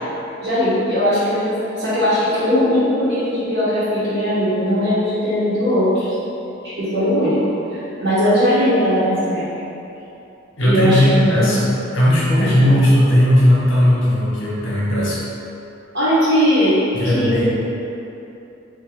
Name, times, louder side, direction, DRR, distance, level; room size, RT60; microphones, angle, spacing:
voice 1, 0.4-6.1 6.6-7.4 7.7-9.5 10.6-11.6 12.3-12.8 15.9-17.4, equal, 60° right, -14 dB, 1.2 m, -19 dB
voice 2, 10.6-15.2 16.9-17.4, left 1 dB, 65° left, -7 dB, 1.1 m, -16 dB
3.8 x 2.4 x 4.3 m, 2.9 s
head